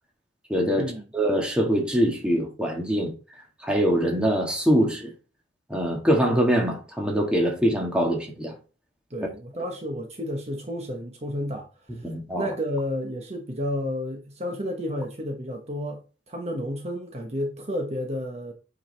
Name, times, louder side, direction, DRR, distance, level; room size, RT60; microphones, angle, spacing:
voice 1, 0.5-3.1 3.6-5.1 5.7-8.5 12.0-12.5, equal, 5° right, 1.8 m, -23 dB
voice 2, 9.1-12.1 12.4-18.5, equal, 35° right, 1.1 m, -31 dB
9.0 x 4.9 x 3.4 m
head